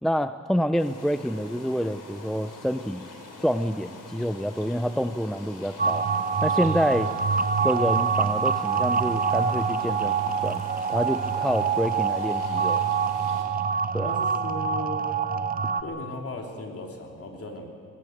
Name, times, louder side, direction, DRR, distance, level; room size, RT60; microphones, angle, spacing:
voice 1, 0.0-3.1 3.4-6.1 6.4-7.1 7.6-10.6 10.9-12.8 13.9-14.1, equal, ahead, 10 dB, 0.4 m, -27 dB
sound 1, 0.8-13.4, left 3 dB, 85° left, 3.9 m, -45 dB
sound 2, 5.8-15.8, right 6 dB, 30° right, 0.7 m, -25 dB
voice 2, 14.0-15.1 15.8-17.7, left 2 dB, 50° left, 1 dB, 3.2 m, -36 dB
20.5 x 19.5 x 8.0 m, 2.2 s
wide cardioid pair, 135°, 30 cm